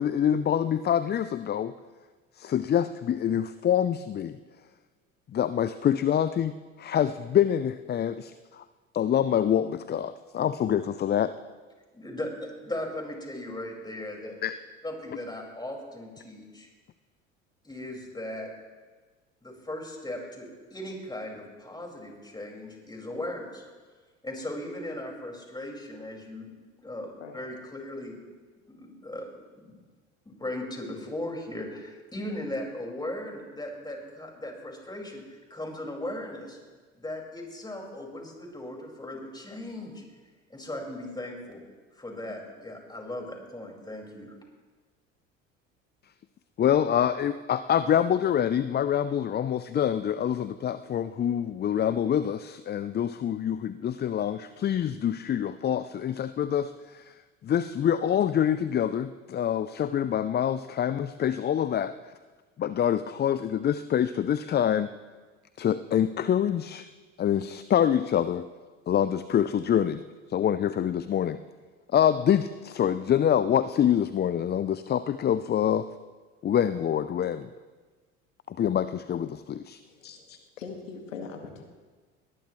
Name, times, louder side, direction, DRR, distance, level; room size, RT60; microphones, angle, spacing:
voice 1, 0.0-1.7 2.4-4.4 5.3-6.5 6.8-8.6 8.9-11.3 14.4-14.5 46.6-57.1 57.4-61.9 62.6-64.9 65.6-66.9 67.2-68.5 68.9-70.0 70.3-71.4 71.9-75.9 76.4-77.5 78.5-80.4, left 9 dB, 25° left, 14 dB, 0.5 m, -26 dB
voice 2, 11.9-14.3 14.8-16.7 17.6-18.5 19.4-23.6 24.2-26.5 26.8-28.2 28.7-29.8 30.2-36.6 37.0-40.0 40.5-41.6 42.0-44.3, left 1 dB, 10° left, 0 dB, 5.2 m, -38 dB
voice 3, 79.9-80.3 80.6-81.6, left 5 dB, 85° left, 4 dB, 1.9 m, -41 dB
22.0 x 19.5 x 3.2 m, 1.4 s
hypercardioid pair, 65°, 37 cm